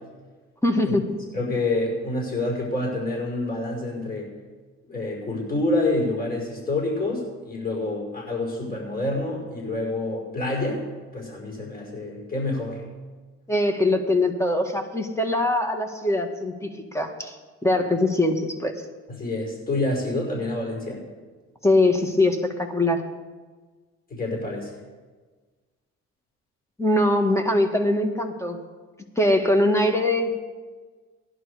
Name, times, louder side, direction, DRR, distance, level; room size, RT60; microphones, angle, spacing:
voice 1, 0.6-1.0 13.5-17.3 17.6-18.7 21.6-23.0 26.8-28.6 29.2-30.3, left 1 dB, 10° left, 5 dB, 1.8 m, -22 dB
voice 2, 1.3-4.3 4.8-10.8 11.1-12.8 19.1-21.0 24.1-24.7, left 2 dB, 30° left, -1 dB, 5.5 m, -27 dB
17.0 x 11.0 x 5.0 m, 1.4 s
cardioid pair, 90°, 30 cm